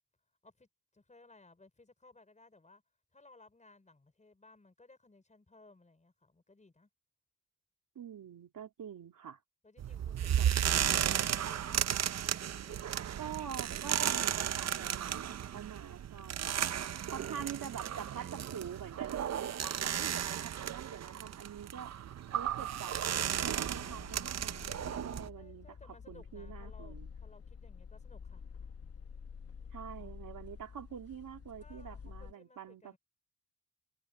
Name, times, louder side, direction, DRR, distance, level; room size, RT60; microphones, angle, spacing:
voice 1, 0.4-2.8 3.1-6.9 9.6-11.8 12.3-13.1 16.1-16.2 22.2-22.6 25.4-28.4 30.0-30.1 31.6-33.0, left 3 dB, 20° left, 5.7 m, -60 dB
voice 2, 7.9-9.4 10.4-10.5 13.2-16.7 17.1-22.0 22.3-23.0 23.4-27.1 29.7-33.0, right 8 dB, 75° right, 3.3 m, -46 dB
sound 1, 9.8-25.3, right 10 dB, 55° right, 0.6 m, -34 dB
sound 2, 23.6-32.3, left 6 dB, 45° left, 1.2 m, -49 dB
wide cardioid pair, 145°, 33 cm